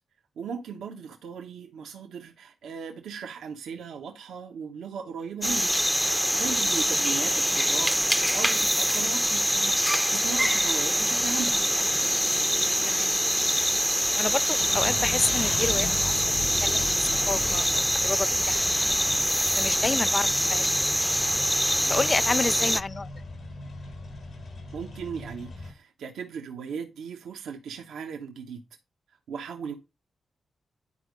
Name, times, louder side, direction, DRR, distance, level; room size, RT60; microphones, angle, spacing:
voice 1, 0.4-9.8 10.1-11.7 21.8-22.0 24.7-28.6 29.3-29.7, right 6 dB, 80° right, 0.9 m, -37 dB
sound 1, 5.4-22.8, equal, ahead, 0.7 m, -24 dB
voice 2, 12.8-13.2 14.2-16.2 16.6-18.8 19.5-20.7 21.9-23.1, left 3 dB, 45° left, 0.4 m, -30 dB
sound 2, 14.6-25.7, left 3 dB, 75° left, 3.7 m, -38 dB
10.0 x 4.4 x 5.0 m
supercardioid pair, 40°, 0 cm